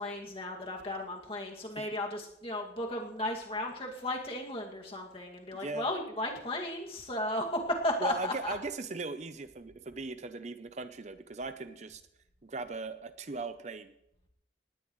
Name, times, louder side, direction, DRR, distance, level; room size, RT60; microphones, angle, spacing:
voice 1, 0.0-8.5, left 1 dB, 30° left, 0 dB, 2.3 m, -35 dB
voice 2, 8.0-12.0 12.4-13.9, right 3 dB, 40° right, 10 dB, 0.6 m, -38 dB
19.0 x 17.0 x 3.2 m, 0.80 s
head